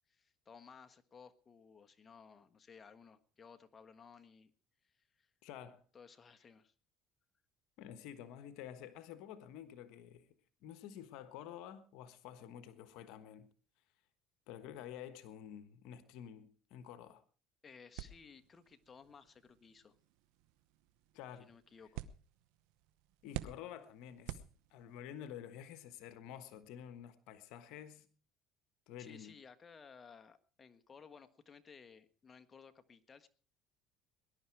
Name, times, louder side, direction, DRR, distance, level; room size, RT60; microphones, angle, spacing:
voice 1, 0.1-4.5 4.8-5.3 5.9-6.7 17.6-20.0 21.4-22.1 29.0-33.3, left 6 dB, 30° left, 1.4 m, -58 dB
voice 2, 5.4-5.8 7.8-10.3 10.6-13.5 14.5-17.2 21.1-21.5 23.2-24.4 24.7-28.1 28.9-29.3, left 10 dB, 75° left, 1.3 m, -50 dB
sound 1, 18.0-25.1, right 13 dB, 80° right, 0.9 m, -50 dB
20.0 x 11.5 x 4.7 m
supercardioid pair, 105°, 0 cm